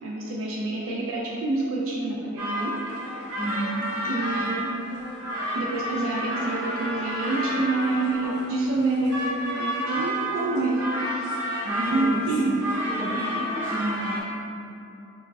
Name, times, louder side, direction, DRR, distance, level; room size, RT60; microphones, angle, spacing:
voice 1, 0.0-2.7 4.1-4.7 5.6-11.3 11.9-12.5, right 2 dB, 65° right, -4 dB, 0.4 m, -27 dB
sound 1, 2.4-14.2, equal, 85° right, 0.7 m, -31 dB
voice 2, 3.4-3.9 11.6-12.6 12.9-14.2, right 1 dB, 15° right, -13 dB, 1.0 m, -31 dB
5.8 x 2.1 x 2.2 m, 2.7 s
head